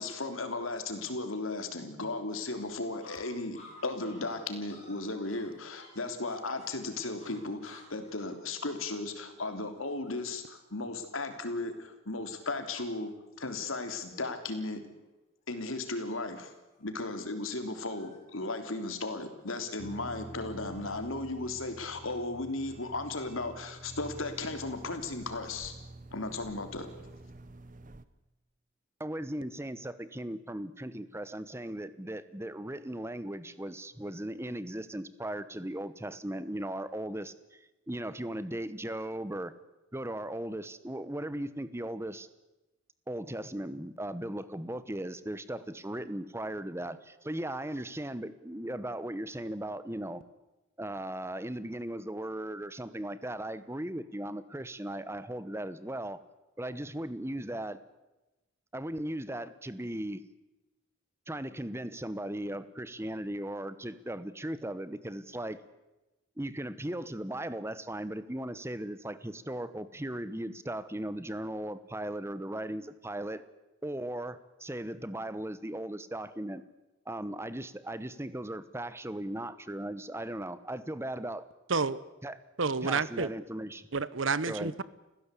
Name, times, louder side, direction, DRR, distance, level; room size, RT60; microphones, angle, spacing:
voice 1, 0.0-14.8 15.5-16.5 16.8-25.7 26.1-26.9, left 2 dB, 85° left, 7 dB, 3.4 m, -36 dB
sound 1, 2.5-12.0 12.4-12.5 12.8-13.4 13.7-14.4 14.8-15.1 15.5-22.0, left 2 dB, 35° left, 7.1 m, -58 dB
sound 2, 19.8-28.0, right 1 dB, 40° right, 1.0 m, -48 dB
voice 2, 29.0-39.5 39.9-42.3 43.1-50.2 50.8-56.2 56.6-57.8 58.7-60.2 61.3-65.6 66.4-73.4 73.8-76.6 77.1-81.4 82.2-82.4 82.8-83.9 84.5-84.8, right 1 dB, 15° right, 14 dB, 1.0 m, -37 dB
voice 3, 81.7-82.0 82.6-83.3 83.9-84.8, right 4 dB, 70° right, 18 dB, 1.0 m, -29 dB
29.5 x 16.0 x 8.4 m, 1.0 s
head